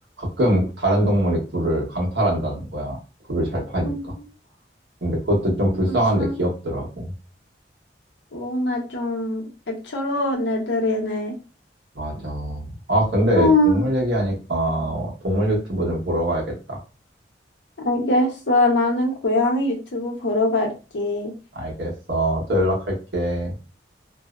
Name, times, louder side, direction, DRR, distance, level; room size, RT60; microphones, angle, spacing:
voice 1, 0.2-3.0 3.3-4.1 5.0-7.1 11.9-16.8 21.5-23.5, right 1 dB, 75° right, -2 dB, 1.0 m, -23 dB
voice 2, 5.9-6.3 8.3-11.3 13.4-13.8 17.8-21.3, left 1 dB, 85° left, 1 dB, 0.8 m, -22 dB
2.6 x 2.0 x 2.4 m, 0.32 s
head